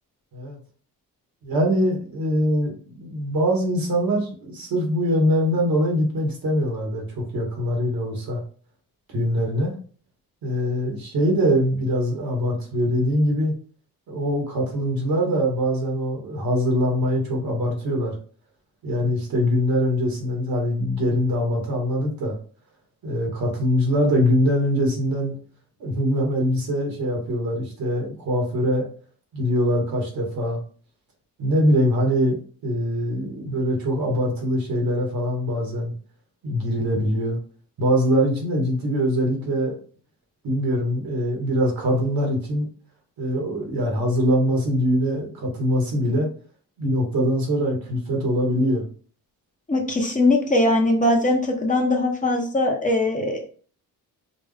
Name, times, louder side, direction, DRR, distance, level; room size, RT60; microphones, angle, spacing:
voice 1, 1.4-8.4 9.1-9.7 10.4-13.5 14.1-18.2 18.8-22.4 23.0-25.3 25.8-28.9 29.3-30.6 31.4-32.4 32.6-35.9 36.4-37.4 37.8-39.8 40.4-42.7 43.2-46.3 46.8-48.9, equal, 70° right, 0 dB, 2.1 m, -23 dB
voice 2, 49.7-53.4, left 2 dB, 20° left, 1 dB, 1.0 m, -21 dB
5.1 x 2.6 x 3.4 m, 0.43 s
cardioid pair, 105°, 36 cm